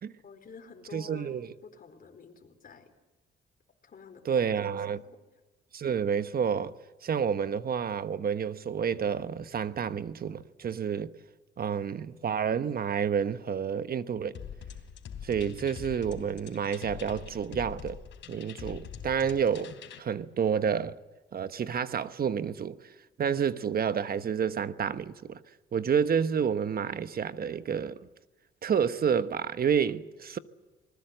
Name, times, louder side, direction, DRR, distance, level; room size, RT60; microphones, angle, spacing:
voice 1, 0.2-2.9 3.8-5.1, left 5 dB, 45° left, 4.4 m, -50 dB
voice 2, 0.9-1.5 4.2-5.0 5.7-6.7 7.0-11.1 11.6-14.4 15.2-18.0 18.3-19.7 20.0-21.0 21.3-22.8 23.2-25.4 25.7-28.0 28.6-30.4, right 7 dB, 50° right, 1.2 m, -29 dB
sound 1, 14.3-20.0, left 8 dB, 70° left, 3.3 m, -44 dB
26.0 x 20.5 x 7.9 m
cardioid pair, 90°, 20 cm